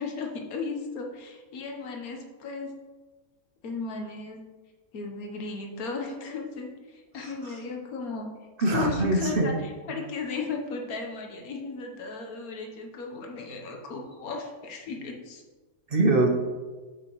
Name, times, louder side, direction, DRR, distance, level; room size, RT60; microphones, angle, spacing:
voice 1, 0.0-2.8 3.6-4.4 4.9-8.3 8.6-15.4, left 4 dB, 85° left, 2 dB, 1.5 m, -35 dB
voice 2, 7.2-7.5 8.6-9.6 15.9-16.3, right 2 dB, 50° right, 2 dB, 0.8 m, -24 dB
8.0 x 5.7 x 3.1 m, 1.3 s
omnidirectional pair, 1.5 m